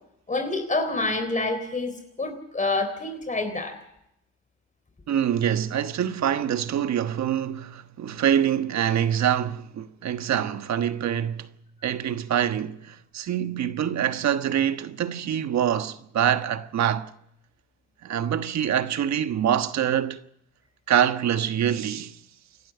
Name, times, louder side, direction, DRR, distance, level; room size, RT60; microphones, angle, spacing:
voice 1, 0.3-3.8, left 2 dB, 25° left, 3.9 m, -27 dB
voice 2, 5.1-11.5 11.8-17.1 18.0-20.2 20.9-22.2, right 9 dB, 65° right, 1.3 m, -25 dB
28.0 x 12.0 x 8.2 m
cardioid pair, 90°, 30 cm